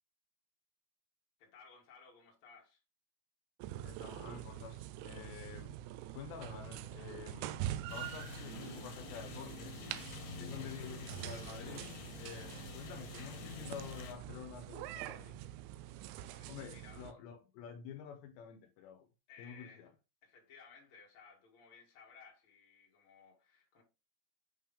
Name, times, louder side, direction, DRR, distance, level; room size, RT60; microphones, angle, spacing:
voice 1, 1.4-2.8 16.2-17.1 19.3-19.9 20.2-23.8, left 6 dB, 40° left, 1.9 m, -59 dB
sound 1, 3.6-17.1, right 13 dB, 85° right, 2.9 m, -45 dB
voice 2, 3.8-5.8 6.1-9.9 10.4-15.4 16.5-19.1 19.4-19.9, left 7 dB, 80° left, 2.7 m, -49 dB
sound 2, 7.9-14.1, left 9 dB, 65° left, 2.8 m, -49 dB
8.7 x 3.5 x 3.5 m
omnidirectional pair, 5.3 m